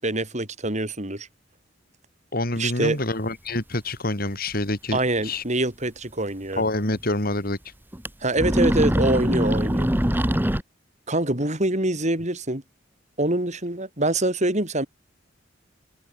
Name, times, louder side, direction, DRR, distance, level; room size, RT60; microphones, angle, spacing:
voice 1, 0.0-1.3 2.6-3.0 4.9-6.6 8.2-9.9 11.1-12.6 13.2-14.9, right 1 dB, 40° right, 5.1 m, -25 dB
voice 2, 2.3-5.4 6.6-7.6, left 2 dB, 50° left, 5.9 m, -27 dB
sound 1, 4.5-4.6 4.9-5.0 6.5-6.6 6.9-7.0 7.9-8.1 8.4-10.6, equal, 10° right, 2.1 m, -22 dB
head